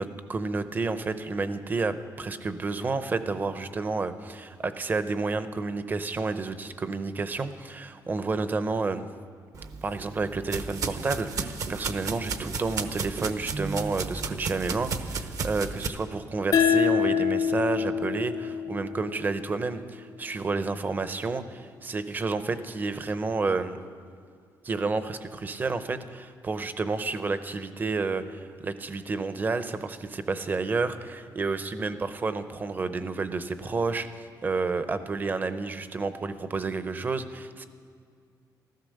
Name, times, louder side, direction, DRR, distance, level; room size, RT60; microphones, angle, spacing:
voice 1, 0.0-9.1 9.8-23.8 24.6-37.7, right 3 dB, 25° right, 11 dB, 0.7 m, -30 dB
sound 1, 9.5-15.9, right 4 dB, 50° right, 0.9 m, -33 dB
sound 2, 16.5-19.7, left 7 dB, 55° left, 0.7 m, -26 dB
16.0 x 14.0 x 6.5 m, 2.2 s
wide cardioid pair, 165°, 7 cm